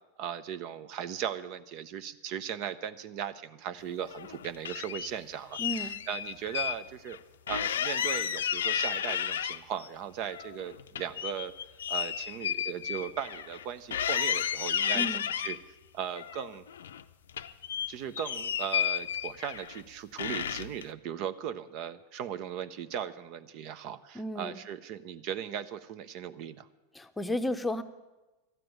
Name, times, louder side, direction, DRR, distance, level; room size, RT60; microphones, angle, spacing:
voice 1, 0.2-7.2 7.5-11.5 11.9-15.1 15.4-15.6 15.9-16.7 17.9-26.7, right 9 dB, 50° right, 13 dB, 0.6 m, -38 dB
sound 1, 4.0-5.1 5.5-6.8 7.1-7.2 7.5-9.9 10.2-13.6 13.9-15.6 16.2-17.0 17.3-19.8 20.2-20.8, left 9 dB, 80° left, 0.5 m, -32 dB
voice 2, 5.6-5.9 14.9-15.2 24.1-24.6 26.9-27.8, left 1 dB, 10° left, 10 dB, 0.8 m, -33 dB
12.0 x 7.7 x 8.9 m, 1.1 s
hypercardioid pair, 95°, 0 cm